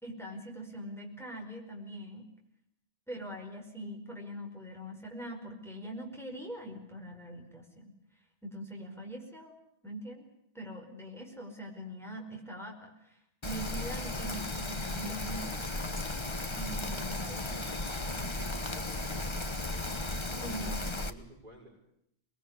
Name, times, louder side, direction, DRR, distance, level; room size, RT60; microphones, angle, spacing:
voice 1, 0.0-2.3 3.1-7.9 8.4-9.5 9.8-10.3 10.5-15.7 16.5-18.3 20.3-20.9, right 1 dB, ahead, 1 dB, 5.2 m, -43 dB
Rain, 13.4-21.1, left 2 dB, 25° left, 1.4 m, -35 dB
voice 2, 18.5-20.0 21.0-21.7, right 1 dB, 40° right, -4 dB, 6.3 m, -53 dB
26.0 x 21.5 x 9.7 m, 0.77 s
omnidirectional pair, 1.2 m